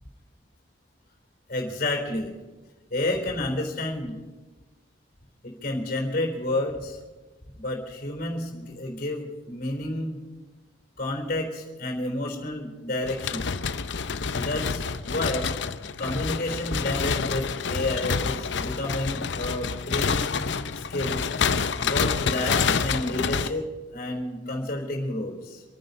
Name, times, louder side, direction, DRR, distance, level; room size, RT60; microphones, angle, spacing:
voice 1, 1.5-2.3 2.9-4.2 5.4-7.0 7.6-10.2 11.0-13.5 14.3-15.5 16.0-20.5 20.8-21.3 21.8-23.7 23.9-25.6, left 1 dB, 50° left, 2 dB, 3.9 m, -30 dB
sound 1, 13.0-23.5, left 5 dB, 70° left, 0.7 m, -28 dB
27.0 x 9.6 x 5.5 m, 1.2 s
head